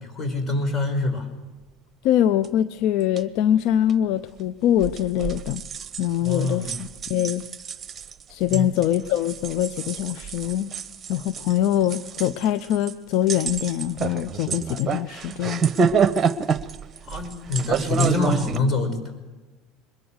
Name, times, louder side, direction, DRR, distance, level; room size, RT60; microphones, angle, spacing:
voice 1, 0.1-1.3 6.2-6.8 8.5-8.7 17.1-19.1, left 2 dB, 30° left, 8 dB, 5.8 m, -25 dB
voice 2, 2.0-5.6 6.0-7.4 8.3-10.7 11.1-15.6, left 11 dB, 65° left, 14 dB, 0.6 m, -23 dB
sound 1, 2.4-2.5 3.0-3.2 3.9-4.0 4.8-18.6, right 6 dB, 35° right, 1.1 m, -28 dB
22.5 x 21.0 x 6.6 m, 1.2 s
hypercardioid pair, 80°, 0 cm